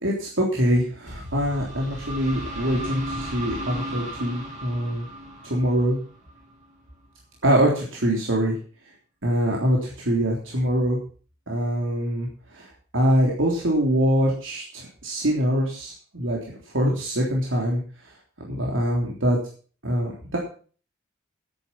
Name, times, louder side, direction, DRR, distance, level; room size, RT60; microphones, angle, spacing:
voice 1, 0.0-5.1 5.4-6.0 7.4-8.5 9.2-11.0 11.5-17.8 18.4-19.4 19.8-20.4, equal, 80° right, -2 dB, 3.4 m, -24 dB
sound 1, 1.1-6.7, right 1 dB, 40° right, 5.5 m, -35 dB
12.5 x 9.7 x 5.9 m, 0.40 s
head